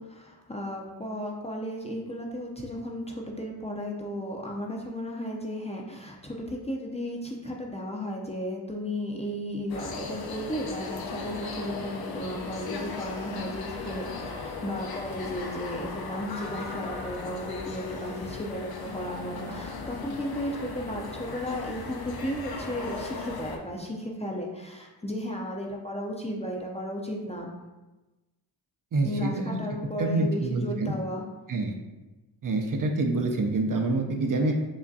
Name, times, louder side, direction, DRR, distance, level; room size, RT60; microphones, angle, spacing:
voice 1, 0.0-27.5 29.0-31.2, equal, 15° left, -1 dB, 0.5 m, -34 dB
sound 1, 9.7-23.6, left 3 dB, 60° left, 0.6 m, -37 dB
voice 2, 28.9-29.6 30.0-30.9 31.5-31.7 32.4-34.5, right 2 dB, 50° right, 3 dB, 0.5 m, -26 dB
4.9 x 2.2 x 2.6 m, 1.1 s
cardioid pair, 65°, 42 cm